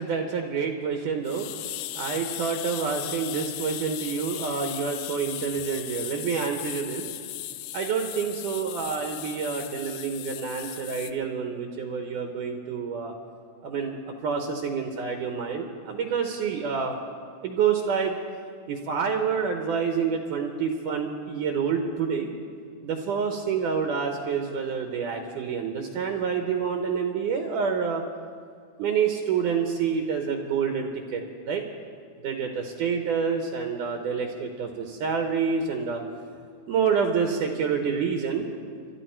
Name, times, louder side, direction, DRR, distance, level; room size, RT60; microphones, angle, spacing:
voice 1, 0.0-1.5 2.0-7.1 7.7-13.1 13.6-17.0 17.4-18.2 18.7-22.3 22.8-28.0 28.8-31.6 32.2-36.0 36.7-38.5, right 6 dB, 85° right, 4 dB, 1.8 m, -28 dB
sound 1, 1.3-11.1, left 14 dB, 85° left, 2.2 m, -37 dB
26.5 x 12.0 x 4.5 m, 2.1 s
omnidirectional pair, 5.1 m